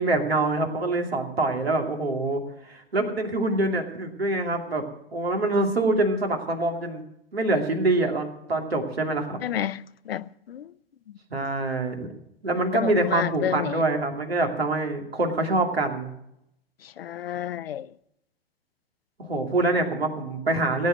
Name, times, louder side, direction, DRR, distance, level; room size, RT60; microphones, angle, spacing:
voice 1, 0.0-4.8 5.1-7.0 7.3-9.4 11.3-12.1 12.4-16.1 19.2-20.9, right 2 dB, 85° right, 2.6 m, -25 dB
voice 2, 9.4-10.7 12.7-13.8 17.0-17.9, left 10 dB, 75° left, 0.6 m, -30 dB
17.5 x 8.7 x 6.3 m
figure-of-eight pair, 105°, 30 cm